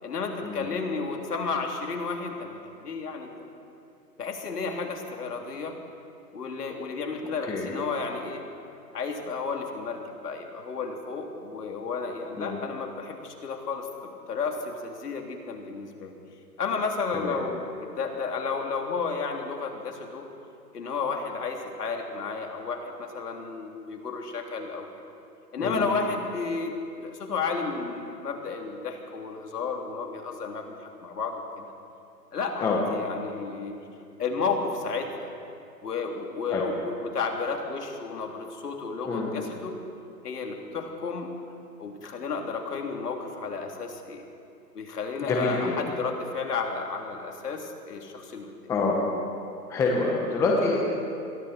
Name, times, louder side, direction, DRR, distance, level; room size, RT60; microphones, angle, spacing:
voice 1, 0.0-3.3 4.2-5.7 6.3-8.4 8.9-13.9 14.3-16.1 16.6-20.3 20.7-24.9 25.5-31.4 32.3-33.7 34.2-35.3 35.8-39.7 40.2-41.3 41.8-44.2 44.7-48.5, left 4 dB, 65° left, 2 dB, 3.5 m, -32 dB
voice 2, 7.4-7.7 12.4-12.6 17.1-17.3 25.6-25.9 32.6-32.8 36.5-36.6 39.0-39.3 45.3-45.6 48.7-49.0 49.7-50.8, left 3 dB, 5° left, -1 dB, 1.1 m, -26 dB
28.0 x 22.5 x 4.4 m, 2.6 s
hypercardioid pair, 155°, 49 cm